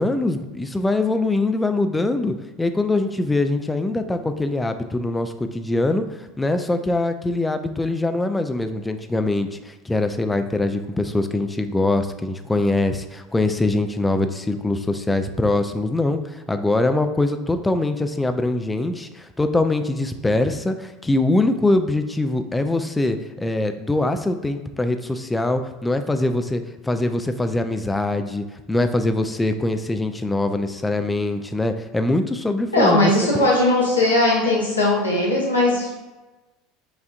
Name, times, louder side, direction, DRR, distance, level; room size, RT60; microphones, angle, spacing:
voice 1, 0.0-6.1 6.4-33.5, left 2 dB, 10° left, 8 dB, 0.3 m, -23 dB
voice 2, 32.7-35.9, left 2 dB, 85° left, -5 dB, 0.9 m, -19 dB
4.9 x 2.5 x 2.5 m, 1.1 s
figure-of-eight pair, 75°, 0 cm